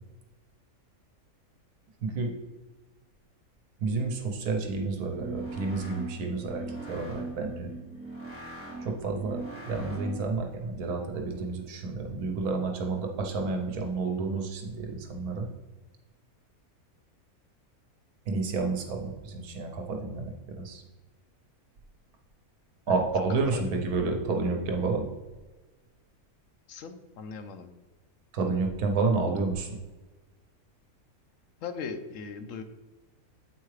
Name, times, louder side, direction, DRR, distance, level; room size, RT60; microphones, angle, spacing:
voice 1, 2.0-2.3 3.8-7.7 8.8-9.4 9.7-15.5 18.3-20.8 22.9-25.0 28.3-29.8, right 3 dB, 85° right, 3 dB, 1.3 m, -30 dB
sound 1, 5.1-10.4, right 2 dB, 10° right, 1.5 m, -40 dB
voice 2, 26.7-27.7 31.6-32.6, left 5 dB, 70° left, 8 dB, 0.9 m, -39 dB
8.0 x 4.6 x 3.2 m, 1.2 s
omnidirectional pair, 1.6 m